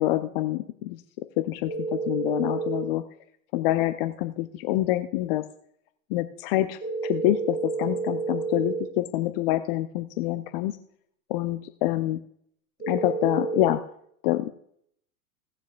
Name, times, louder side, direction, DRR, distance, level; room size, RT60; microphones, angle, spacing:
voice 1, 0.0-3.0 3.5-5.4 6.1-10.8 11.3-12.2 12.9-13.8 14.2-14.5, left 15 dB, 40° left, 9 dB, 0.6 m, -26 dB
sound 1, 1.7-2.8 6.8-8.8 12.8-13.7, right 5 dB, 20° right, 4.7 m, -30 dB
18.0 x 7.2 x 2.3 m, 0.68 s
hypercardioid pair, 105°, 44 cm